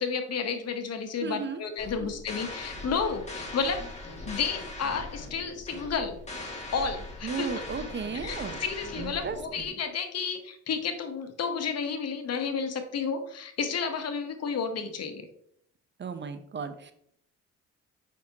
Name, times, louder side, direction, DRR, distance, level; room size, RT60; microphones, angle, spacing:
voice 1, 0.0-6.2 6.7-7.5 8.2-15.3, left 5 dB, 55° left, 7 dB, 1.1 m, -31 dB
voice 2, 1.2-1.6 2.0-2.1 7.2-8.6 9.0-9.7 16.0-16.9, right 5 dB, 40° right, 9 dB, 0.7 m, -35 dB
sound 1, 1.8-9.7, left 2 dB, 20° left, 2.0 m, -40 dB
6.4 x 5.5 x 2.8 m, 0.66 s
cardioid pair, 90°, 30 cm